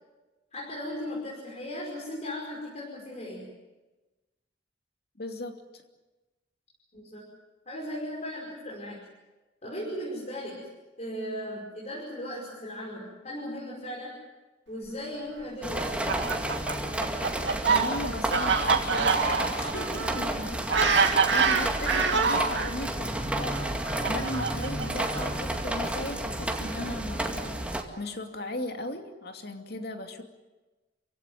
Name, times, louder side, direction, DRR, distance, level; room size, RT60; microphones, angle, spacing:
voice 1, 0.5-3.5 6.9-7.2 7.7-9.0 9.6-10.7 11.0-14.2 14.7-16.1, equal, 40° left, -4 dB, 5.5 m, -37 dB
voice 2, 5.2-5.8 17.7-20.6 20.8-30.2, left 1 dB, 60° left, 5 dB, 2.7 m, -37 dB
sound 1, 15.6-27.8, right 1 dB, 5° right, 2.2 m, -31 dB
Fowl, 15.8-22.7 23.5-25.6, right 5 dB, 75° right, 2.6 m, -26 dB
28.5 x 16.5 x 9.3 m, 1.1 s
head